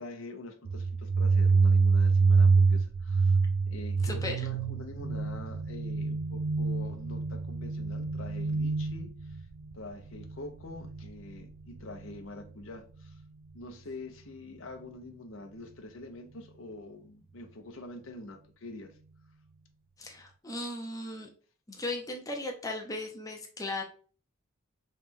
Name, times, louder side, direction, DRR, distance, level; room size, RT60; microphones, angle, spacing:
voice 1, 0.0-3.4 3.6-9.5 9.7-13.2 13.5-19.0, left 2 dB, 75° left, 0.7 m, -45 dB
sound 1, 0.6-12.2, right 4 dB, 85° right, 0.4 m, -27 dB
voice 2, 4.0-4.4 20.0-21.3 21.7-23.8, left 2 dB, 15° left, 0.6 m, -37 dB
3.2 x 3.1 x 3.5 m
head